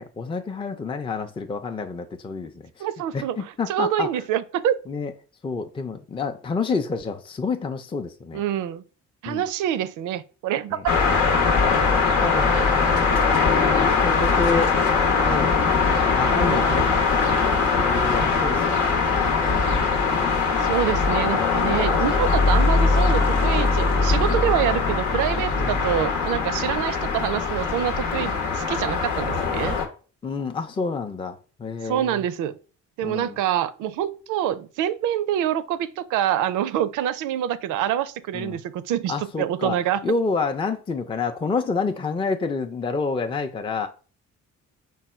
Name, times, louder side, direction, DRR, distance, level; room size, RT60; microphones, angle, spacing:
voice 1, 0.0-2.9 3.1-4.1 4.9-5.1 5.4-8.4 9.3-9.4 10.7-10.8 11.5-14.8 15.2-15.5 16.1-17.1 17.4-20.3 25.5-25.8 30.2-32.2 33.0-33.4 38.3-38.6 39.1-39.8 40.0-43.9, left 4 dB, 15° left, 0.4 m, -29 dB
voice 2, 2.8-4.7 8.3-8.8 9.2-10.8 12.5-12.7 16.3-16.9 20.6-29.8 31.8-32.6 33.0-40.0, right 11 dB, 85° right, 0.4 m, -26 dB
sound 1, 10.9-29.8, left 4 dB, 90° left, 1.0 m, -21 dB
4.6 x 2.2 x 4.2 m
cardioid pair, 90°, 30 cm